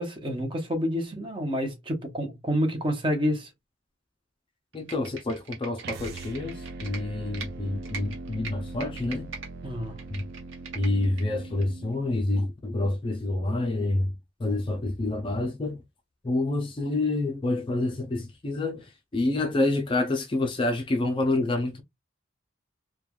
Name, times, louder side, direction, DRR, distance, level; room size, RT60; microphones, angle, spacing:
voice 1, 0.0-3.5 9.6-10.0, equal, 25° right, 0.7 m, -28 dB
voice 2, 4.7-9.3 10.1-10.2 10.8-14.1 14.4-15.8 16.2-21.8, left 2 dB, 25° left, 0.4 m, -28 dB
Computer keyboard, 4.7-7.5 7.8-9.5 9.8-11.2 11.6-11.7, right 5 dB, 70° right, 0.9 m, -41 dB
sound 1, 5.8-12.0, right 3 dB, 50° right, 0.3 m, -41 dB
3.2 x 2.2 x 2.2 m
head